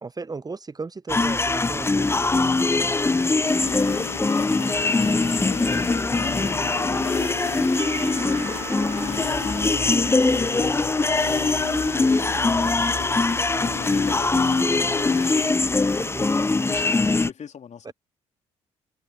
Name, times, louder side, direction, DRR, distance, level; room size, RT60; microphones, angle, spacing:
voice 1, 0.0-2.8 13.6-14.0 16.0-16.4 17.8-17.9, right 4 dB, 25° right, 1.0 m, -36 dB
sound 1, 1.1-17.3, left 3 dB, 15° left, 0.7 m, -22 dB
voice 2, 3.1-3.6 4.7-6.1 6.4-7.7 8.0-11.1 13.5-14.6 16.7-17.9, left 7 dB, 50° left, 3.8 m, -43 dB
sound 2, 3.4-15.5, left 10 dB, 90° left, 0.7 m, -37 dB
Percussion / Church bell, 7.8-13.0, right 14 dB, 80° right, 2.2 m, -42 dB
figure-of-eight pair, 45°, 16 cm